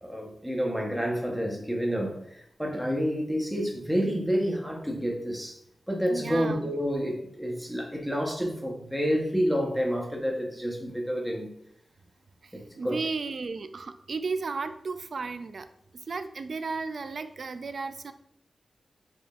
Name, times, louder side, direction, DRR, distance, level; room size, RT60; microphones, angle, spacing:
voice 1, 0.0-5.6 5.9-11.5 12.5-13.0, equal, ahead, 0.9 m, -29 dB
voice 2, 6.1-6.6 12.8-15.7 16.1-18.1, right 4 dB, 60° right, 0.4 m, -34 dB
6.0 x 3.7 x 2.4 m
wide cardioid pair, 115°, 0 cm